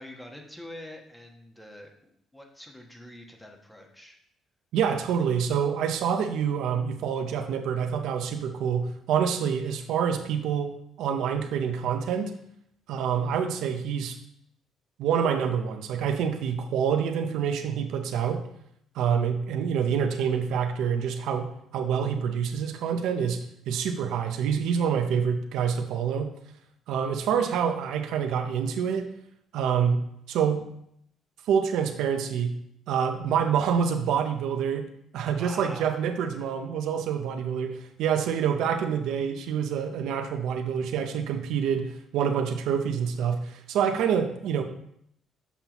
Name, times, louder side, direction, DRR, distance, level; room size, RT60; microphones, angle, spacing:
voice 1, 0.0-4.2 35.3-35.9, left 1 dB, 10° left, 2 dB, 1.2 m, -45 dB
voice 2, 4.7-12.3 12.9-14.2 15.0-18.4 18.9-26.3 26.9-29.1 29.5-30.0 30.3-30.6 31.5-32.6 32.9-34.9 35.1-44.6, right 7 dB, 80° right, 6 dB, 0.6 m, -27 dB
7.1 x 5.6 x 3.0 m, 0.71 s
cardioid pair, 80°, 0 cm